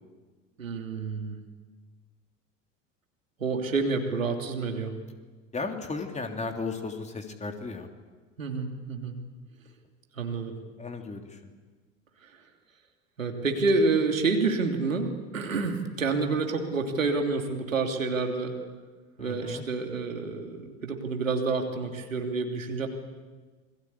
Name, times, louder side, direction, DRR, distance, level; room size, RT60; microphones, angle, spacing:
voice 1, 0.6-1.4 3.4-4.9 8.4-9.1 10.1-10.5 13.2-18.5 19.2-22.9, right 3 dB, 80° right, 4 dB, 3.1 m, -28 dB
voice 2, 5.5-7.9 10.8-11.2 19.2-19.6, left 3 dB, 15° left, 4 dB, 3.2 m, -35 dB
28.0 x 22.5 x 8.5 m, 1.4 s
figure-of-eight pair, 75°, 39 cm